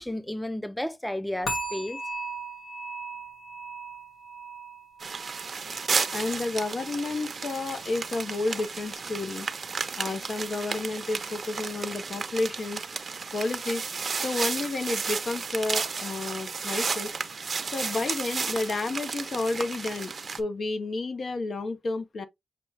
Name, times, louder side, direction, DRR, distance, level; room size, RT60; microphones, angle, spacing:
voice 1, 0.0-2.0, left 1 dB, 5° left, 0.6 m, -32 dB
sound 1, 1.5-8.5 8.8-9.2 9.7-9.8, right 2 dB, 80° left, 2.0 m, -39 dB
sound 2, 5.0-20.4, right 5 dB, 55° right, 0.7 m, -33 dB
voice 2, 6.1-9.5 9.9-12.8 13.3-13.8 14.2-17.1 17.7-22.3, left 3 dB, 60° left, 0.7 m, -31 dB
6.7 x 2.3 x 3.2 m
cardioid pair, 70°, 0 cm